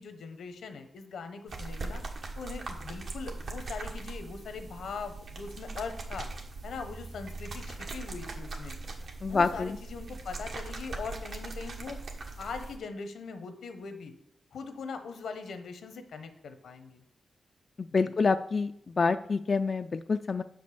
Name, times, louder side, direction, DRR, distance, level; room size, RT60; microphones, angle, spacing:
voice 1, 0.0-2.0 2.4-6.3 6.6-8.7 9.3-12.0 12.4-14.1 14.5-17.0 18.0-18.1, left 5 dB, 85° left, 8 dB, 1.0 m, -41 dB
sound 1, 1.5-12.8, right 3 dB, 65° right, 1.4 m, -40 dB
voice 2, 9.2-9.8 17.9-18.7 19.0-20.4, left 4 dB, 45° left, 9 dB, 0.3 m, -27 dB
6.2 x 5.3 x 6.8 m, 0.74 s
cardioid pair, 90°, 0 cm